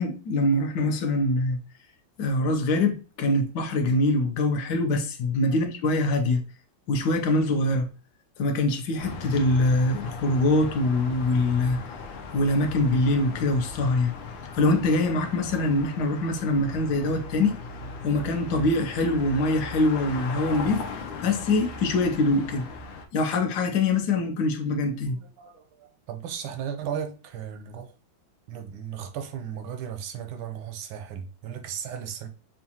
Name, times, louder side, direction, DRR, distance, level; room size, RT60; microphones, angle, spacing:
voice 1, 0.0-1.6 2.2-6.4 6.9-7.9 8.4-11.8 12.3-14.1 14.5-17.6 18.0-20.8 21.2-22.6 23.1-25.2, left 2 dB, 65° left, 1.3 m, -24 dB
sound 1, 9.0-23.1, left 3 dB, 85° left, 1.4 m, -38 dB
voice 2, 25.1-27.9 28.5-32.3, right 8 dB, 85° right, 1.5 m, -36 dB
6.0 x 2.4 x 2.8 m
omnidirectional pair, 2.1 m